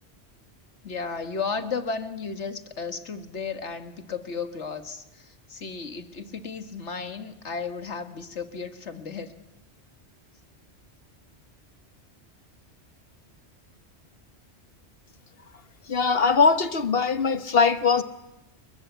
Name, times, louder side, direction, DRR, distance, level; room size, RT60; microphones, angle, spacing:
voice 1, 0.8-9.3, left 5 dB, 85° left, 8 dB, 2.0 m, -34 dB
voice 2, 15.9-18.0, left 5 dB, 60° left, 11 dB, 1.3 m, -21 dB
29.0 x 22.5 x 8.1 m, 0.96 s
omnidirectional pair, 1.1 m